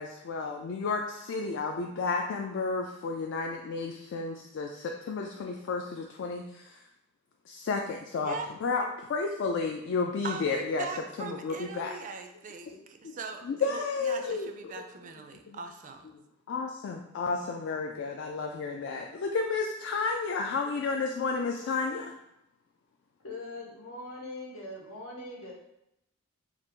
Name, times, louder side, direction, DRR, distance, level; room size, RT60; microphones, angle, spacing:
voice 1, 0.0-6.8 7.5-8.3 8.6-10.9 11.2-11.9 13.0-13.2 13.4-14.7 15.5-15.6 16.5-22.1, left 4 dB, 60° left, 2 dB, 0.3 m, -32 dB
voice 2, 10.2-16.1, right 4 dB, 35° right, 6 dB, 0.3 m, -41 dB
voice 3, 23.2-25.5, left 2 dB, 85° left, -2 dB, 1.1 m, -41 dB
3.9 x 2.4 x 3.6 m, 0.85 s
head